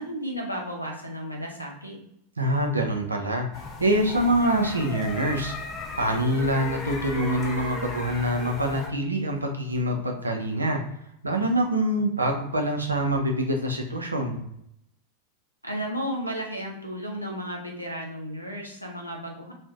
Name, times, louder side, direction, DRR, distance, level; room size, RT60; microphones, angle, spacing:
voice 1, 0.0-2.0 15.6-19.5, equal, 90° left, 0 dB, 0.6 m, -33 dB
voice 2, 2.4-5.5 6.0-10.8 11.2-14.5, right 1 dB, 80° right, 2 dB, 0.5 m, -25 dB
sound 1, 3.5-8.9, left 2 dB, 20° left, 0.5 m, -36 dB
2.5 x 2.1 x 3.4 m, 0.76 s
figure-of-eight pair, 90°, 0 cm